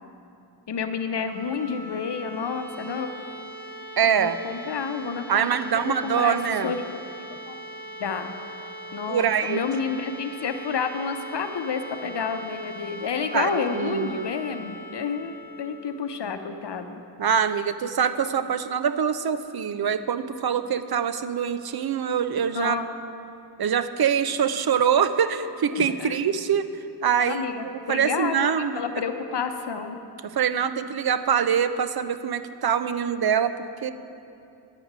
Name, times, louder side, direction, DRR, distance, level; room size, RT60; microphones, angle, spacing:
voice 1, 0.7-3.1 4.0-6.4 6.6-6.8 7.3-7.5 8.0-8.3 8.9-17.0 22.5-22.9 25.7-26.2 27.2-30.0, left 6 dB, 75° left, 7 dB, 0.8 m, -30 dB
sound 1, 1.1-16.9, right 1 dB, 5° left, 2.5 m, -41 dB
voice 2, 4.0-4.4 5.3-6.7 9.1-9.6 13.3-14.3 17.2-22.8 23.6-26.7 27.0-28.8 30.3-33.5 33.8-33.9, right 8 dB, 60° right, 11 dB, 0.5 m, -24 dB
10.5 x 6.0 x 8.0 m, 2.6 s
wide cardioid pair, 105°, 42 cm